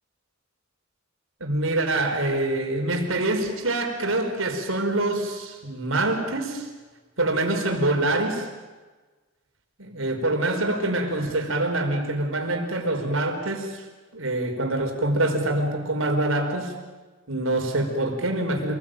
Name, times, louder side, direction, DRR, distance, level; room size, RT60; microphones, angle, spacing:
voice 1, 1.4-6.7 7.2-8.5 9.8-13.8 14.1-16.7 17.3-18.8, right 2 dB, 90° right, 4 dB, 5.0 m, -25 dB
28.0 x 20.5 x 9.1 m, 1.3 s
head